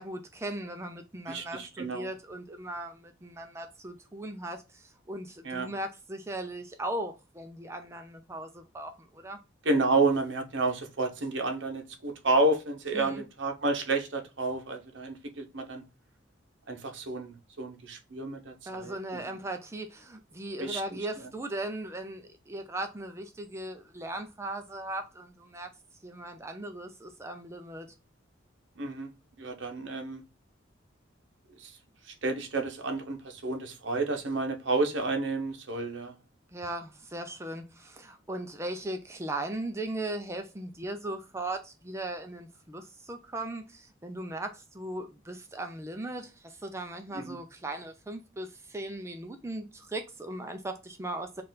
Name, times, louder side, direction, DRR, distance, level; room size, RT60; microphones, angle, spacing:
voice 1, 0.0-9.4 12.9-13.2 18.7-25.7 26.0-27.9 36.5-51.4, right 1 dB, 15° right, 0.4 m, -38 dB
voice 2, 1.3-2.1 5.4-5.7 9.6-15.8 16.7-19.2 20.6-20.8 28.8-29.1 29.4-30.2 31.6-31.7 32.2-36.1 47.1-47.4, right 2 dB, 65° right, 0.8 m, -30 dB
4.4 x 2.5 x 3.8 m
head